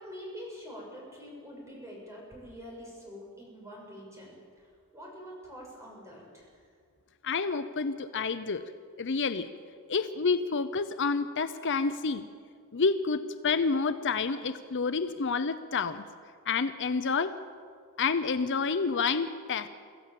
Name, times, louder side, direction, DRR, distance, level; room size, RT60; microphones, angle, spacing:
voice 1, 0.0-4.7 4.9-6.5, equal, 15° right, -3 dB, 6.7 m, -45 dB
voice 2, 7.2-8.6 9.0-9.5 9.9-12.3 12.7-16.0 16.5-17.3 18.0-19.7, left 4 dB, 55° left, 11 dB, 0.7 m, -29 dB
24.5 x 15.0 x 7.7 m, 2.1 s
head